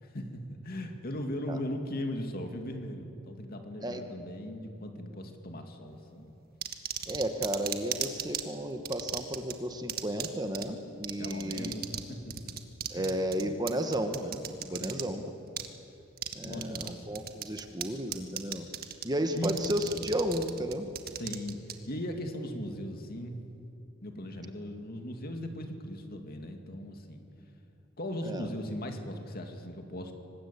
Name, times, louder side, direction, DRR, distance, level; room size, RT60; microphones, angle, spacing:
voice 1, 0.0-6.3 11.2-12.5 12.9-13.2 14.8-15.3 16.4-17.1 19.3-19.6 21.2-21.6 21.9-23.4 24.0-27.2 28.0-30.1, equal, 50° left, 4 dB, 2.5 m, -38 dB
sound 1, 6.6-8.4 8.8-9.5 9.9-10.3 10.5-10.6 11.0-12.0 12.3-15.0 15.6-15.7 16.2-16.9 17.1-17.8 18.1-19.0 19.4-21.7, right 10 dB, 50° right, 1.5 m, -35 dB
voice 2, 7.1-11.7 12.9-15.2 16.3-18.7 19.0-20.9 28.2-28.5, equal, 20° right, 6 dB, 1.4 m, -33 dB
24.0 x 20.0 x 8.6 m, 2.7 s
head